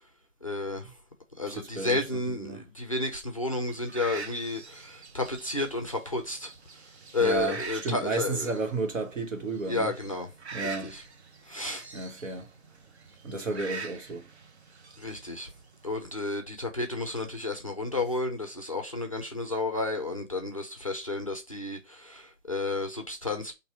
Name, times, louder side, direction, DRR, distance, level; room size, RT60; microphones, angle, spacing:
voice 1, 0.4-0.9 1.4-6.5 7.1-8.5 9.6-10.3 10.8-11.0 11.5-11.9 15.0-15.5 15.8-23.5, left 2 dB, 30° left, 0.4 m, -31 dB
voice 2, 1.5-2.6 7.2-9.9 10.5-11.0 11.9-12.5 13.2-14.3, right 3 dB, 75° right, 1.4 m, -33 dB
sound 1, 3.6-15.9, right 4 dB, 55° right, 0.8 m, -45 dB
3.0 x 2.6 x 4.4 m
figure-of-eight pair, 155°, 38 cm